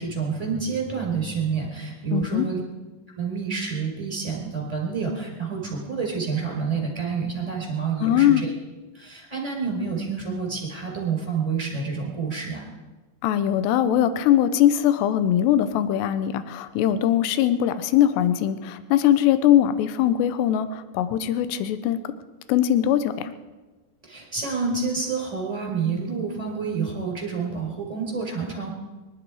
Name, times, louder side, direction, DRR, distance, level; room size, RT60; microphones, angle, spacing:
voice 1, 0.0-2.6 3.2-8.5 8.9-12.6 24.0-28.7, right 5 dB, 10° right, 0 dB, 3.9 m, -28 dB
voice 2, 2.1-2.5 8.0-8.4 13.2-22.0 22.5-23.3, left 11 dB, 80° left, 11 dB, 2.9 m, -21 dB
24.5 x 12.0 x 4.9 m, 1.2 s
omnidirectional pair, 5.0 m